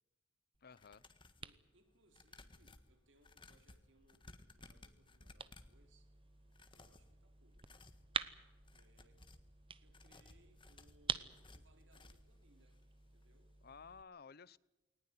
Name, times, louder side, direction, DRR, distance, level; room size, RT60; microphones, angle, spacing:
sound 1, 0.5-14.0, right 6 dB, 30° right, 0.9 m, -49 dB
voice 1, 0.6-1.0 13.6-14.6, left 5 dB, 55° left, 0.7 m, -55 dB
sound 2, 0.7-1.5 2.1-5.8 6.5-7.1 7.5-8.1 8.5-9.5 9.9-12.4 12.7-12.8 13.2-13.3, left 2 dB, 25° left, 1.6 m, -60 dB
voice 2, 1.4-6.1 6.7-7.7 8.7-9.3 9.8-12.9 13.1-13.6, right 1 dB, 75° right, 3.7 m, -72 dB
19.5 x 19.5 x 9.6 m
head